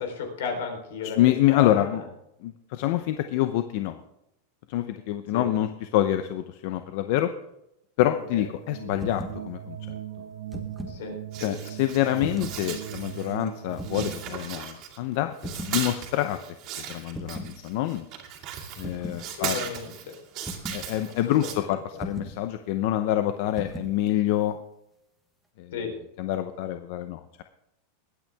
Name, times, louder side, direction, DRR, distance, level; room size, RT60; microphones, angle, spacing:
voice 1, 0.0-2.0 5.3-5.5 8.1-8.4 10.8-11.5 19.3-19.9 21.3-21.6 25.7-26.0, left 6 dB, 75° left, 4 dB, 3.7 m, -34 dB
voice 2, 1.2-2.0 2.4-4.0 4.7-7.3 8.0-10.0 11.4-16.4 16.7-18.0 18.8-19.7 20.7-24.6 25.6-25.7 26.2-27.4, left 13 dB, 50° left, 9 dB, 0.7 m, -26 dB
sound 1, 8.2-14.3, right 12 dB, 80° right, 0.8 m, -39 dB
sound 2, 8.9-9.4 10.3-11.0 12.2-12.7 13.7-14.2 15.4-15.8 17.1-17.6 18.8-19.2 20.5-20.9 22.0-22.4 23.6-24.0, equal, ahead, 1.2 m, -37 dB
sound 3, 11.3-13.5 13.7-15.1 15.4-21.5, right 9 dB, 35° right, 2.4 m, -37 dB
21.0 x 9.1 x 3.5 m, 0.83 s
supercardioid pair, 170°, 0 cm